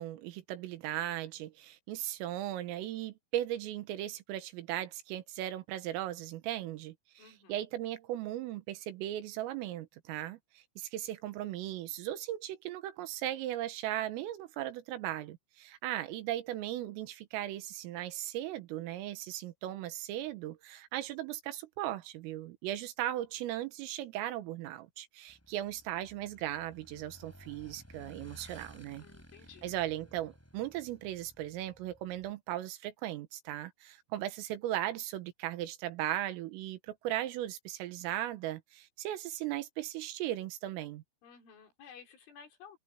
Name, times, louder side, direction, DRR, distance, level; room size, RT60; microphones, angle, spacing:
voice 1, 0.0-29.0 29.6-41.0, right 13 dB, 85° right, 4.1 m, -37 dB
voice 2, 7.2-7.7 29.0-29.7 41.2-42.8, left 7 dB, 70° left, 6.8 m, -54 dB
Motorcycle / Engine, 25.3-32.3, equal, 5° left, 7.5 m, -56 dB
omnidirectional pair, 5.8 m